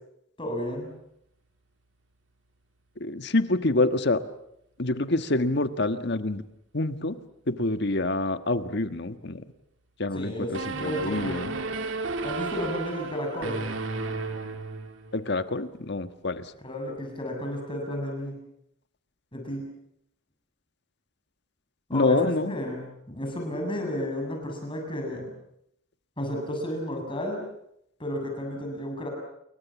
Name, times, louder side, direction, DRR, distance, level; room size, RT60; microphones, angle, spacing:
voice 1, 0.4-0.9 10.1-11.6 12.2-13.6 16.6-18.4 19.3-19.7 21.9-25.3 26.2-27.4 28.0-29.1, left 1 dB, 25° left, 2 dB, 7.2 m, -32 dB
voice 2, 3.0-4.2 4.8-6.4 6.7-7.2 7.5-9.4 10.0-11.5 15.1-16.4 21.9-22.5, left 2 dB, 60° left, 10 dB, 1.5 m, -26 dB
sound 1, 10.5-15.2, right 3 dB, 75° right, 2.8 m, -33 dB
29.5 x 22.5 x 7.2 m, 0.76 s
head